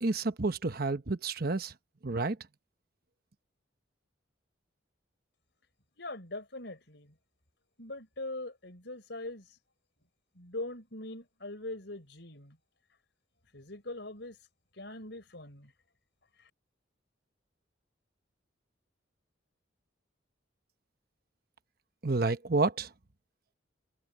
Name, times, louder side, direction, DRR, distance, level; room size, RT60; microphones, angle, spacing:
voice 1, 0.0-1.7 2.0-2.4 22.0-22.9, right 3 dB, 50° right, 1.0 m, -29 dB
voice 2, 6.0-7.1 7.8-9.5 10.3-12.6 13.5-14.4 14.7-15.7 16.4-16.5, left 2 dB, 60° left, 6.1 m, -42 dB
head